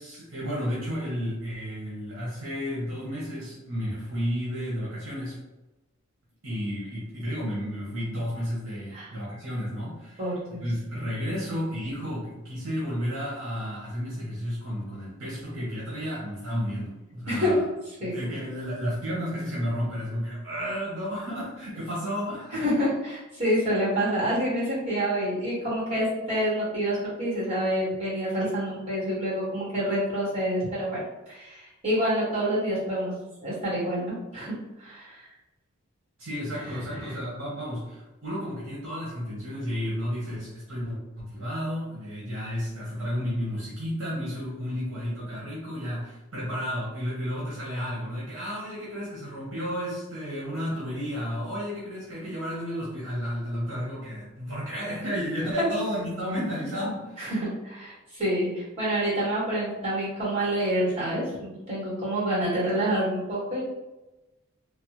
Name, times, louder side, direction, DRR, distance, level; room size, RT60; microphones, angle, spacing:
voice 1, 0.0-5.4 6.4-17.6 18.0-22.7 36.2-57.3, equal, 65° right, -6 dB, 0.9 m, -32 dB
voice 2, 10.2-10.6 17.3-17.6 18.0-18.2 22.5-31.0 31.3-35.3 36.7-37.2 57.2-63.6, equal, 30° right, -8 dB, 1.5 m, -27 dB
3.3 x 2.0 x 2.9 m, 1.0 s
head